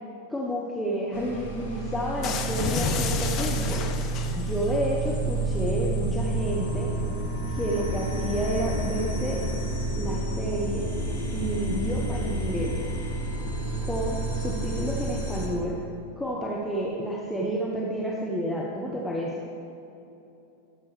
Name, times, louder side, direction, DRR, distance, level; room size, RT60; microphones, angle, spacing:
voice 1, 0.3-3.8 4.4-6.9 7.5-9.4 10.0-10.9 11.3-12.8 13.8-15.8 16.2-19.3, right 1 dB, 5° left, -3 dB, 0.9 m, -30 dB
sound 1, 1.1-15.5, right 2 dB, 70° left, 1.8 m, -30 dB
sound 2, 2.2-4.7, left 5 dB, 35° left, 0.7 m, -30 dB
13.0 x 7.1 x 3.4 m, 2.9 s
figure-of-eight pair, 90°, 0 cm